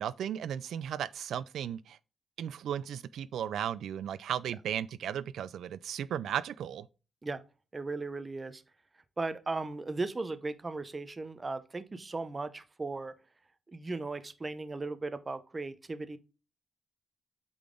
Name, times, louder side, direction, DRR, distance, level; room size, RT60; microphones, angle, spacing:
voice 1, 0.0-2.0 2.4-6.9, right 9 dB, 75° right, 0.3 m, -35 dB
voice 2, 7.7-8.6 9.2-13.1 13.7-16.2, right 3 dB, 20° right, 0.6 m, -37 dB
8.3 x 3.9 x 3.6 m
wide cardioid pair, 170°, 0 cm